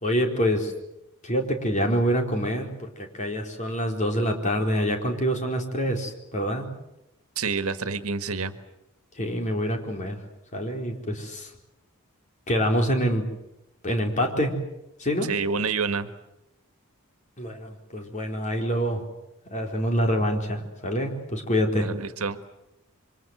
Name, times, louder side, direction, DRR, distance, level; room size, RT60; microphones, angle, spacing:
voice 1, 0.0-0.7 1.2-6.7 9.2-10.2 10.5-11.5 12.5-13.2 13.8-14.5 15.0-15.3 17.4-19.0 19.5-21.9, equal, 35° left, 3 dB, 4.3 m, -26 dB
voice 2, 7.3-8.6 15.2-16.1 21.7-22.4, right 4 dB, 75° right, 10 dB, 1.7 m, -28 dB
27.5 x 25.0 x 8.0 m, 0.88 s
head